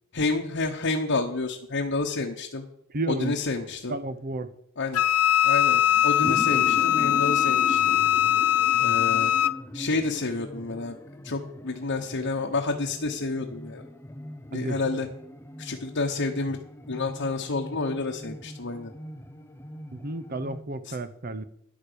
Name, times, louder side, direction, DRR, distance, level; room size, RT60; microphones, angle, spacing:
voice 1, 0.1-2.6 3.1-3.9 4.8-5.0 5.4-8.0 8.8-9.3 9.7-11.0 11.2-13.8 14.5-15.1 15.6-16.6 16.9-18.9 20.9-21.0, left 3 dB, 55° left, 1.1 m, -29 dB
voice 2, 2.9-3.4 3.9-4.5 6.2-6.8 14.5-14.8 19.9-21.4, right 2 dB, 45° right, 0.8 m, -32 dB
Wind instrument woodwind instrument, 4.9-9.6, left 11 dB, 75° left, 0.5 m, -21 dB
sound 1, 5.9-20.6, equal, 10° left, 0.6 m, -40 dB
10.5 x 9.0 x 6.8 m
head